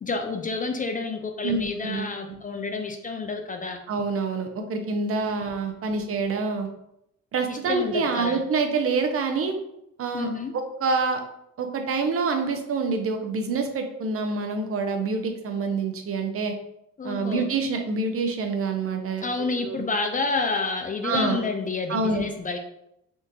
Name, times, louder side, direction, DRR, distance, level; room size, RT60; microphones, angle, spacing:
voice 1, 0.0-3.8 5.3-5.4 7.5-8.4 10.1-10.5 17.0-17.5 19.2-22.6, left 4 dB, 30° left, 4 dB, 0.4 m, -29 dB
voice 2, 1.4-2.4 3.9-6.7 7.3-9.5 10.0-10.3 10.5-11.2 11.6-16.5 17.0-19.2 19.6-19.8 21.0-21.4 21.9-22.2, right 4 dB, 50° right, 5 dB, 0.6 m, -26 dB
3.7 x 2.4 x 2.7 m, 0.79 s
cardioid pair, 90°, 30 cm